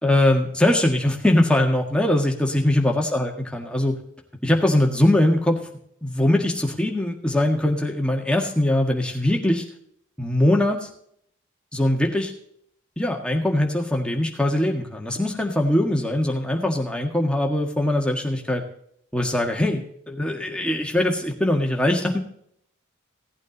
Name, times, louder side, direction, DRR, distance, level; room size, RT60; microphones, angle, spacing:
voice 1, 0.0-4.0 4.4-5.6 6.0-9.6 10.2-10.9 11.7-12.3 13.0-18.6 19.1-22.2, left 1 dB, 5° left, 1 dB, 1.7 m, -21 dB
17.0 x 8.9 x 4.1 m, 0.67 s
head